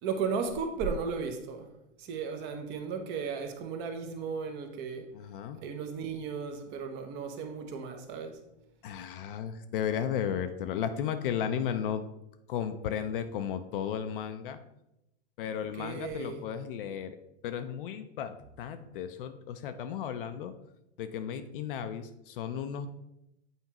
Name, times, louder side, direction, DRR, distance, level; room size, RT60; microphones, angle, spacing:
voice 1, 0.0-1.7 2.0-5.1 5.6-8.4 15.7-16.4, right 5 dB, 30° right, 0.8 m, -35 dB
voice 2, 5.1-5.6 8.8-12.1 12.5-14.6 15.4-17.2 17.4-20.5 21.0-22.9, left 8 dB, 50° left, 0.5 m, -34 dB
8.1 x 4.4 x 2.9 m
hypercardioid pair, 135°, 36 cm